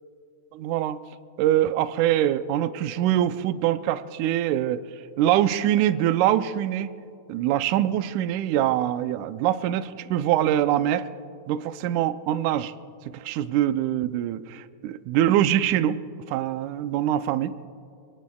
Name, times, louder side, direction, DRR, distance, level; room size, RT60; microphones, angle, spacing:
voice 1, 0.5-1.0 1.4-4.8 5.2-6.9 7.3-11.1 11.5-12.7 13.1-16.0 16.3-17.5, right 12 dB, 80° right, 12 dB, 1.9 m, -24 dB
28.5 x 18.0 x 2.3 m, 2.5 s
omnidirectional pair, 3.7 m